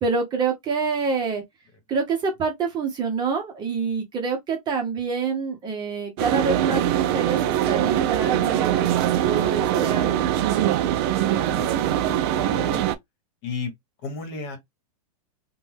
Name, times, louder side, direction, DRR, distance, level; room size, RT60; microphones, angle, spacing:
voice 1, 0.0-1.4 1.9-10.5, right 5 dB, 20° right, 0.7 m, -27 dB
sound 1, 6.2-12.9, right 11 dB, 40° right, 0.4 m, -22 dB
voice 2, 9.2-10.0 11.3-11.7 12.1-12.9 13.4-13.7 14.0-14.6, left 4 dB, 50° left, 1.2 m, -35 dB
2.5 x 2.2 x 3.3 m
supercardioid pair, 145°, 20 cm